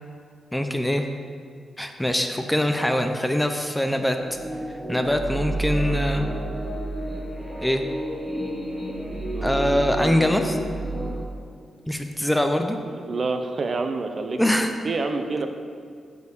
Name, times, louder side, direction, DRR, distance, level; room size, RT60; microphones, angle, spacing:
voice 1, 0.5-1.1 1.8-4.2 4.9-6.3 7.6-7.8 9.4-10.6 11.9-12.8 14.4-14.7, left 1 dB, 5° left, 5 dB, 0.4 m, -23 dB
sound 1, 4.2-11.2, right 1 dB, 20° right, 1.2 m, -30 dB
voice 2, 12.9-14.4 14.8-15.5, right 3 dB, 40° right, 7 dB, 0.6 m, -28 dB
6.7 x 6.4 x 7.1 m, 2.1 s
wide cardioid pair, 145°, 0 cm